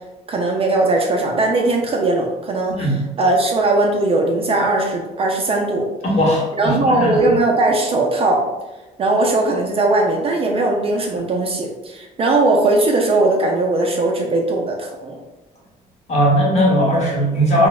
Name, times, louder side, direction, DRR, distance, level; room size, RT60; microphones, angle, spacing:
voice 1, 0.3-2.9 3.2-5.9 6.6-8.4 9.0-15.2, right 2 dB, 35° right, 1 dB, 0.4 m, -19 dB
voice 2, 6.0-7.2 16.1-17.7, equal, 40° left, -3 dB, 0.9 m, -18 dB
3.1 x 2.0 x 2.3 m, 1.1 s
cardioid pair, 110°, 17 cm